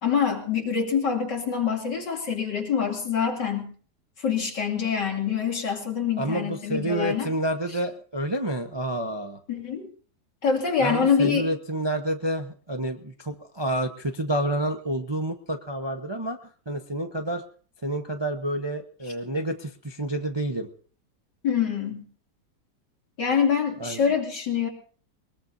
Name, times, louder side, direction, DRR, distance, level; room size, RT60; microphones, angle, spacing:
voice 1, 0.0-3.7 4.2-7.3 9.5-9.9 10.4-11.4 21.4-22.0 23.2-24.7, left 7 dB, 70° left, 1 dB, 3.5 m, -25 dB
voice 2, 6.2-9.4 10.8-16.4 16.7-17.4 17.8-20.7 23.8-24.0, right 1 dB, 20° right, 5 dB, 0.7 m, -29 dB
22.0 x 20.5 x 2.7 m, 0.42 s
omnidirectional pair, 2.0 m